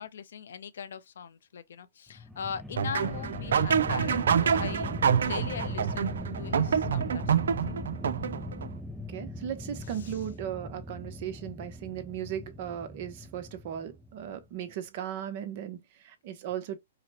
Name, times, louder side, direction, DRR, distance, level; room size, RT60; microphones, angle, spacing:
voice 1, 0.0-7.9 9.9-10.2, left 7 dB, 75° left, 0.6 m, -41 dB
sound 1, 2.1-14.4, left 1 dB, ahead, 0.3 m, -39 dB
sound 2, 2.8-8.7, right 7 dB, 80° right, 0.4 m, -27 dB
voice 2, 9.1-16.8, right 10 dB, 45° right, 0.8 m, -37 dB
4.9 x 2.1 x 2.9 m
hypercardioid pair, 155°, 0 cm